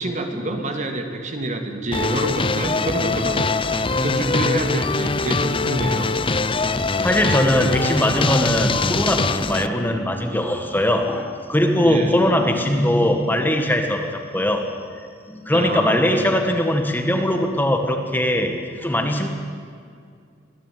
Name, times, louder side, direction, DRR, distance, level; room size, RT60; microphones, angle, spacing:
voice 1, 0.0-3.5 3.8-6.1 11.8-12.2 15.5-16.2, right 2 dB, 40° right, 5 dB, 2.4 m, -27 dB
sound 1, 1.9-9.7, left 3 dB, 30° left, 0.7 m, -22 dB
voice 2, 7.0-14.7 15.3-19.3, left 1 dB, 10° left, 4 dB, 1.8 m, -20 dB
24.0 x 17.0 x 9.3 m, 2.2 s
head